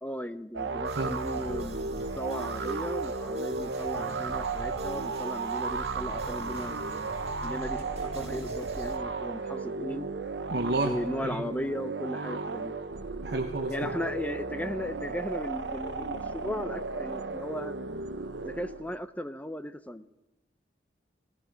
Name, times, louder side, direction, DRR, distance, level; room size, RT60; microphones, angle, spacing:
voice 1, 0.0-7.1 7.4-10.1 10.8-12.7 13.7-17.7 18.4-20.1, equal, 10° left, 11 dB, 0.6 m, -36 dB
sound 1, 0.5-19.0, right 3 dB, 90° right, 1.0 m, -34 dB
sound 2, 0.8-9.0, right 1 dB, 35° right, 1.6 m, -45 dB
voice 2, 10.5-11.0 11.2-11.4 13.2-13.9, right 2 dB, 65° right, 3 dB, 1.0 m, -30 dB
17.5 x 16.0 x 5.2 m, 0.95 s
head